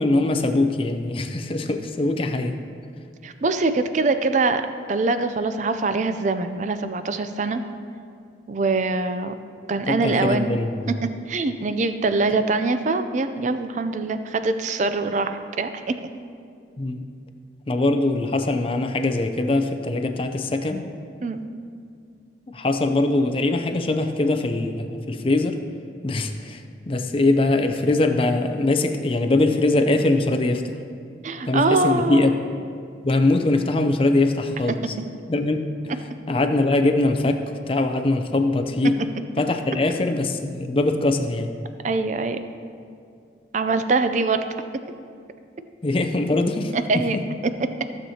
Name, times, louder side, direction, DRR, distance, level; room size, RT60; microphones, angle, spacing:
voice 1, 0.0-2.6 9.9-11.0 16.8-17.1 17.7-20.8 22.5-25.6 26.0-30.8 31.5-32.3 33.0-35.0 35.3-35.6 36.3-39.0 39.4-41.5 45.8-47.3, left 2 dB, 30° left, 6 dB, 0.5 m, -22 dB
voice 2, 3.2-4.6 4.9-7.6 8.5-9.3 9.7-10.6 10.9-11.0 11.3-16.0 21.2-21.5 31.2-32.3 41.8-42.4 43.5-44.4 46.7-47.2, right 3 dB, 40° right, 10 dB, 0.4 m, -23 dB
15.5 x 7.1 x 2.8 m, 2.3 s
head